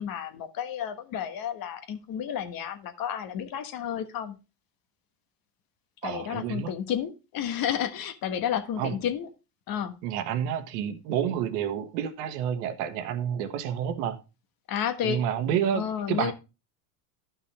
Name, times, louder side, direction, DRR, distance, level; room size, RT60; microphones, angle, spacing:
voice 1, 0.0-4.4 6.0-9.3 9.7-9.9 14.7-15.2 15.7-16.3, left 9 dB, 50° left, 1.3 m, -31 dB
voice 2, 6.0-6.7 8.8-9.0 10.0-14.2 15.0-16.3, right 9 dB, 70° right, 1.4 m, -29 dB
12.5 x 5.8 x 3.4 m
supercardioid pair, 110°, 46 cm